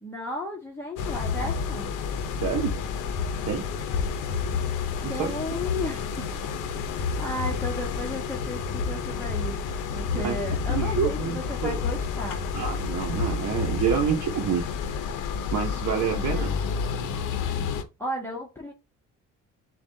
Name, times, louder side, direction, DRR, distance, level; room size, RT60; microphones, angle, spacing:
voice 1, 0.0-1.9 5.1-6.3 6.9-9.6 9.9-12.4 16.1-16.5 18.0-18.7, left 1 dB, 10° left, 1.2 m, -34 dB
sound 1, 1.0-17.8, left 5 dB, 90° left, 0.7 m, -29 dB
voice 2, 2.4-2.7 3.4-3.6 5.0-5.3 10.1-10.4 10.7-11.8 12.5-14.7 15.5-16.5, right 7 dB, 60° right, 0.9 m, -27 dB
7.1 x 2.5 x 2.7 m
cardioid pair, 90°, 30 cm